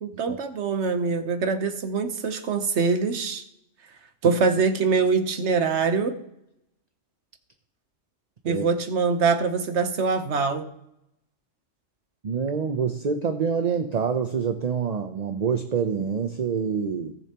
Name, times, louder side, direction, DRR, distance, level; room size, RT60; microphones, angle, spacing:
voice 1, 0.0-3.4 4.2-6.2 8.4-10.7, right 5 dB, 65° right, 8 dB, 1.2 m, -24 dB
voice 2, 12.2-17.1, right 6 dB, 45° right, 6 dB, 0.6 m, -26 dB
17.5 x 6.8 x 2.9 m, 0.81 s
omnidirectional pair, 1.3 m